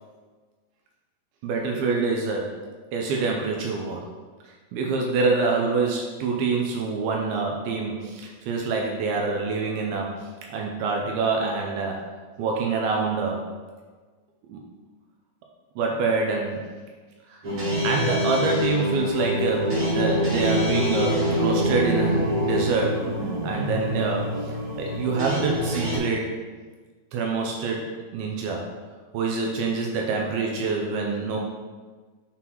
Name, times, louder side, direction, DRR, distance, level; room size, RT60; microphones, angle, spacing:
voice 1, 1.4-2.6 2.9-4.1 4.4-12.1 12.4-13.4 14.5-14.6 15.8-16.7 17.3-17.4 17.8-23.0 23.4-26.4 27.1-28.6 29.1-31.4, right 4 dB, 80° right, 0 dB, 2.3 m, -26 dB
sound 1, 17.4-26.0, equal, 65° right, 1.3 m, -25 dB
9.5 x 4.0 x 3.0 m, 1.4 s
omnidirectional pair, 4.9 m